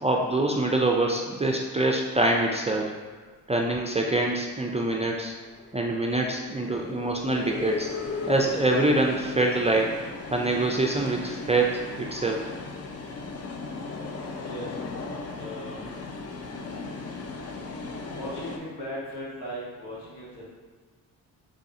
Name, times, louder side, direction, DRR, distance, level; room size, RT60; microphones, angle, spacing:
voice 1, 0.0-3.0 3.5-5.3 5.7-7.9 8.3-10.0 10.3-12.5, right 2 dB, 15° right, 0 dB, 0.4 m, -25 dB
sound 1, 4.5-18.6, left 4 dB, 40° left, 0.5 m, -37 dB
voice 2, 15.3-15.9 18.1-20.4, equal, 75° left, -6 dB, 1.5 m, -37 dB
3.7 x 3.4 x 2.8 m, 1.4 s
supercardioid pair, 55°, 41 cm